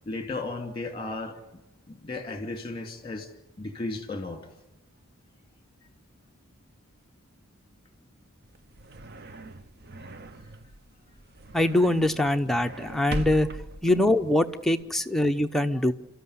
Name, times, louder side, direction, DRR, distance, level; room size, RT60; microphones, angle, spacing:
voice 1, 0.1-1.4 1.9-3.3 3.6-4.4, left 2 dB, 20° left, 5 dB, 2.6 m, -34 dB
sound 1, 8.4-14.8, right 1 dB, 45° right, 0.8 m, -40 dB
voice 2, 11.5-13.5 13.8-15.9, left 1 dB, ahead, 5 dB, 0.8 m, -23 dB
29.5 x 14.0 x 9.7 m, 1.0 s
head